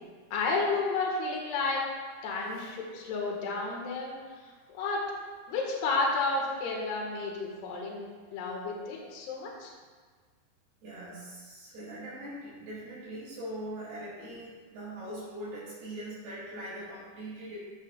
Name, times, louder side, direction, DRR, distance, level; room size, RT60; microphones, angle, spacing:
voice 1, 0.3-1.8 2.2-4.2 4.4-5.0 5.5-9.7, left 3 dB, 75° left, -1 dB, 3.7 m, -31 dB
voice 2, 10.8-17.6, right 1 dB, 70° right, -9 dB, 5.0 m, -41 dB
15.0 x 10.5 x 2.5 m, 1.5 s
omnidirectional pair, 4.9 m